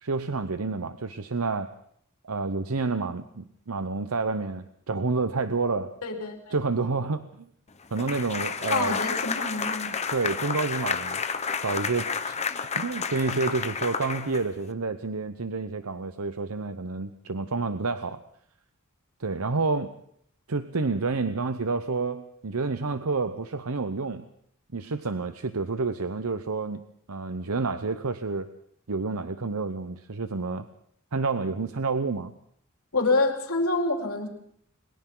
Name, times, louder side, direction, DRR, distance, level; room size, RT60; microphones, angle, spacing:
voice 1, 0.0-1.7 2.2-6.0 6.5-7.3 7.9-9.0 10.1-11.2 11.6-12.4 12.8-18.2 19.2-19.9 20.5-24.3 24.7-28.5 28.9-30.7 31.1-32.3, right 3 dB, 80° right, 10 dB, 0.9 m, -29 dB
voice 2, 6.0-6.6 8.7-10.0 32.9-34.3, left 3 dB, 80° left, 2 dB, 4.2 m, -26 dB
sound 1, 8.0-14.7, left 6 dB, 30° left, 1.0 m, -31 dB
30.0 x 22.5 x 4.0 m, 0.68 s
head